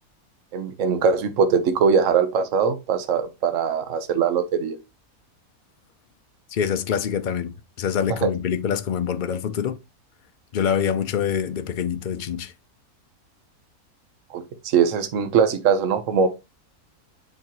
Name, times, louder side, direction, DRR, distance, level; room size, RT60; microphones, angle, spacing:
voice 1, 0.5-4.8 8.2-8.3 14.3-16.3, right 6 dB, 60° right, 1.2 m, -21 dB
voice 2, 6.5-9.8 10.5-12.5, left 8 dB, 75° left, 0.4 m, -25 dB
7.4 x 5.6 x 2.9 m
omnidirectional pair, 1.6 m